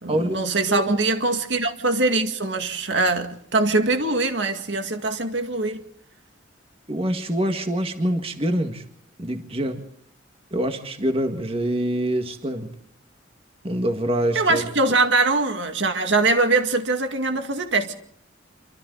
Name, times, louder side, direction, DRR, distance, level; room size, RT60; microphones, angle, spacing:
voice 1, 0.0-5.8 14.3-17.9, right 3 dB, 70° right, 2.1 m, -22 dB
voice 2, 6.9-8.8 9.2-9.8 10.5-12.7 13.6-14.7, right 1 dB, 30° right, 1.9 m, -25 dB
27.5 x 25.0 x 4.0 m
head